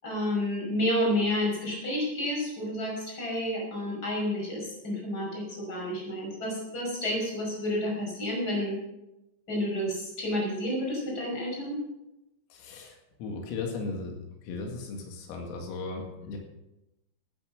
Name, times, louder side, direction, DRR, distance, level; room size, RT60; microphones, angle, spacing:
voice 1, 0.0-8.8 9.5-11.8, left 1 dB, 20° left, -2 dB, 5.5 m, -30 dB
voice 2, 12.5-14.2 14.4-16.4, left 3 dB, 90° left, 2 dB, 4.8 m, -36 dB
15.0 x 9.5 x 6.5 m, 0.93 s
omnidirectional pair, 5.9 m